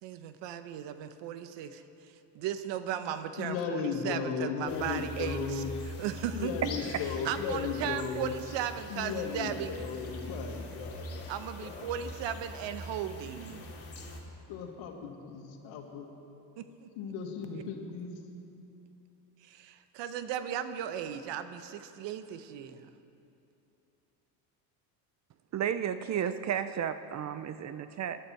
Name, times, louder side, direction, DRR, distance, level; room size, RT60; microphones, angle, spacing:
voice 1, 0.0-1.8 2.3-6.6 7.2-9.7 11.3-13.6 16.6-16.9 17.5-17.6 19.4-22.9, right 9 dB, 65° right, 10 dB, 1.0 m, -36 dB
voice 2, 3.4-5.7 6.3-8.3 8.9-11.3 11.6-11.9 14.5-16.1 17.0-18.1, left 6 dB, 70° left, 3 dB, 2.1 m, -36 dB
sound 1, 4.7-14.2, left 1 dB, 30° left, 2.7 m, -43 dB
voice 3, 25.5-28.2, right 9 dB, 35° right, 12 dB, 0.5 m, -33 dB
19.0 x 11.5 x 4.6 m, 2.8 s
supercardioid pair, 95°, 48 cm